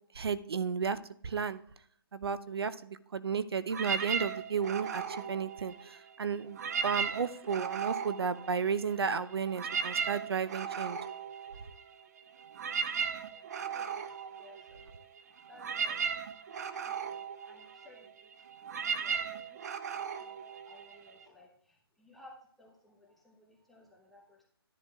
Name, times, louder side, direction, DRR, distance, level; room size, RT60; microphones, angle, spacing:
voice 1, 0.1-1.6 2.1-11.0, right 6 dB, 75° right, 14 dB, 0.6 m, -33 dB
sound 1, 3.7-6.1 6.5-9.0 9.3-21.2, right 6 dB, 40° right, 0.6 m, -37 dB
voice 2, 13.6-16.1 16.7-18.3 18.6-19.6 19.9-24.4, left 2 dB, ahead, -3 dB, 0.8 m, -59 dB
13.0 x 10.0 x 2.4 m, 0.62 s
hypercardioid pair, 155°, 13 cm